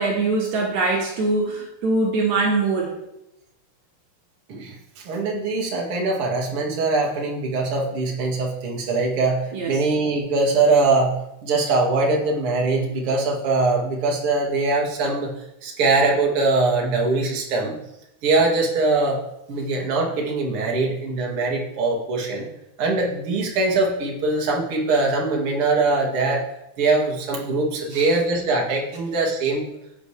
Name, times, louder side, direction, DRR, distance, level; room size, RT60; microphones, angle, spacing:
voice 1, 0.0-2.9 9.5-9.8 27.9-28.0, right 3 dB, 70° right, -1 dB, 3.0 m, -22 dB
voice 2, 5.0-11.1 11.4-15.3 15.6-17.8 18.2-19.2 19.5-22.5 22.8-26.4 26.8-29.6, right 3 dB, 50° right, -2 dB, 2.7 m, -22 dB
15.5 x 8.5 x 3.3 m, 0.86 s
omnidirectional pair, 3.5 m